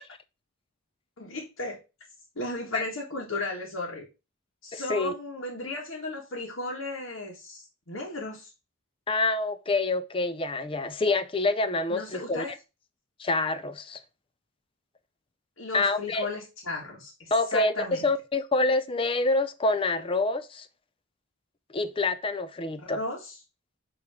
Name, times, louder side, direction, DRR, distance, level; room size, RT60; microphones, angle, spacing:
voice 1, 1.2-1.8 2.3-4.1 4.6-8.5 11.9-12.5 15.6-18.1 22.8-23.3, left 2 dB, 80° left, 1.6 m, -35 dB
voice 2, 4.7-5.1 9.1-12.4 13.2-14.0 15.7-16.3 17.3-20.7 21.7-23.0, left 2 dB, 25° left, 0.5 m, -27 dB
8.2 x 3.1 x 4.8 m
head